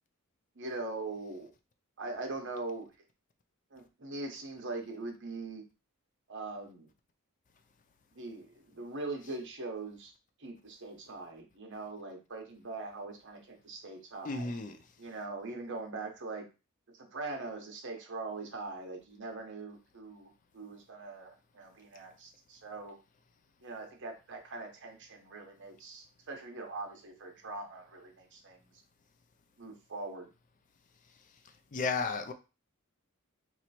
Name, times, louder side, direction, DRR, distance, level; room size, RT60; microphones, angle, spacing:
voice 1, 0.5-1.5 2.0-2.9 3.7-5.6 6.3-6.9 8.1-10.1 10.4-14.5 15.0-16.5 16.9-23.0 23.6-28.7 29.6-30.3, right 3 dB, 55° right, 1.0 m, -42 dB
voice 2, 14.2-14.7 31.7-32.3, left 4 dB, 35° left, 0.4 m, -33 dB
3.1 x 2.9 x 4.2 m
head